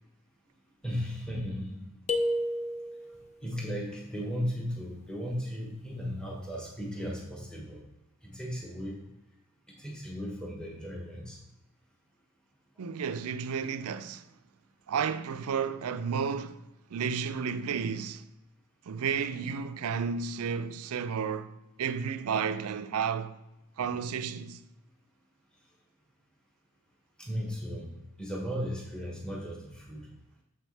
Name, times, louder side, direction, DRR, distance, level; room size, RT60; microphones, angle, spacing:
voice 1, 0.8-1.9 3.4-7.8 8.2-9.0 9.7-11.4 27.2-30.1, equal, 5° left, 1.2 m, -36 dB
sound 1, 2.1-3.2, left 1 dB, 30° left, 0.6 m, -30 dB
voice 2, 12.8-14.3 14.9-16.6 16.9-18.2 18.9-21.5 21.8-23.3 23.8-24.6, right 6 dB, 75° right, 0.4 m, -32 dB
7.0 x 6.2 x 3.3 m
head